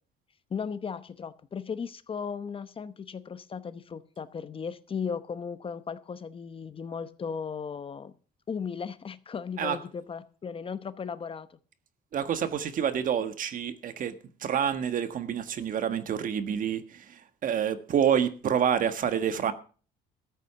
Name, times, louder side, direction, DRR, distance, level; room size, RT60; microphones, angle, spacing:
voice 1, 0.5-8.1 8.5-11.6, left 6 dB, 30° left, 0.9 m, -36 dB
voice 2, 12.1-19.5, right 8 dB, 55° right, 1.5 m, -28 dB
14.0 x 8.2 x 6.9 m
cardioid pair, 110°, 17 cm